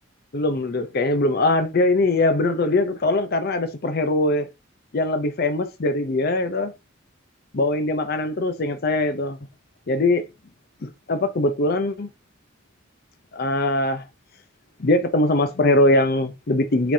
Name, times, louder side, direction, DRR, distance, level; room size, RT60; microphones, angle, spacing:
voice 1, 0.3-4.5 4.9-6.8 7.5-9.4 9.9-10.3 10.8-12.1 13.3-14.0 14.8-16.9, left 2 dB, 50° left, 0.6 m, -21 dB
7.5 x 5.1 x 2.7 m
head